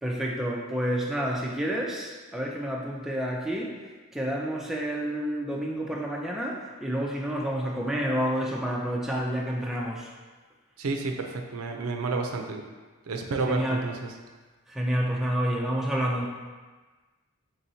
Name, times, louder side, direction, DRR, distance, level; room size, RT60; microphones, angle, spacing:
voice 1, 0.0-3.8 4.1-10.1 13.5-13.8 14.7-16.3, equal, ahead, -2 dB, 0.4 m, -29 dB
voice 2, 10.8-12.7 13.1-14.1, right 3 dB, 90° right, 3 dB, 0.5 m, -30 dB
4.2 x 3.7 x 2.7 m, 1.3 s
head